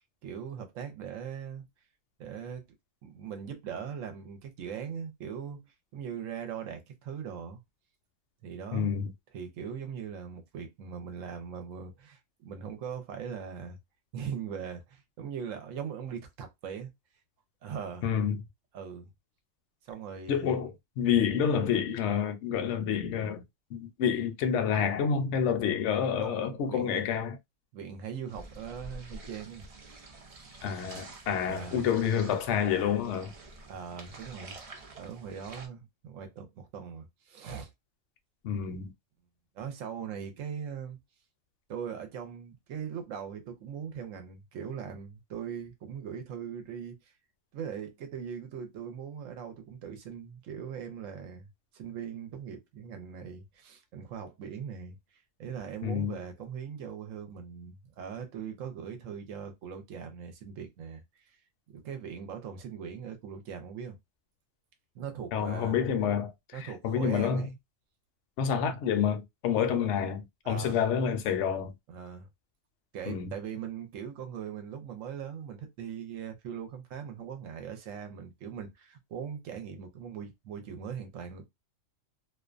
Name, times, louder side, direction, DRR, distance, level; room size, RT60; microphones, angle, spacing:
voice 1, 0.2-1.7 2.2-2.7 3.0-7.6 8.4-8.9 9.3-13.8 14.1-16.9 17.6-18.1 18.7-19.1 19.8-20.7 26.2-27.1 27.7-29.7 31.4-31.9 33.7-34.6 35.0-37.7 39.5-41.0 41.7-47.1 47.5-51.5 51.7-55.0 55.4-61.3 61.7-64.0 64.9-65.8 66.5-67.5 70.4-70.8 71.9-72.3 72.9-81.5, right 7 dB, 75° right, 0.9 m, -40 dB
voice 2, 8.7-9.1 18.0-18.4 20.3-23.4 23.7-27.4 30.6-33.3 38.4-38.9 55.8-56.2 65.3-67.5 68.4-71.7 73.1-73.3, left 7 dB, 65° left, 0.8 m, -28 dB
sound 1, 28.3-35.7, right 2 dB, 60° right, 0.3 m, -48 dB
2.4 x 2.2 x 2.4 m
omnidirectional pair, 1.4 m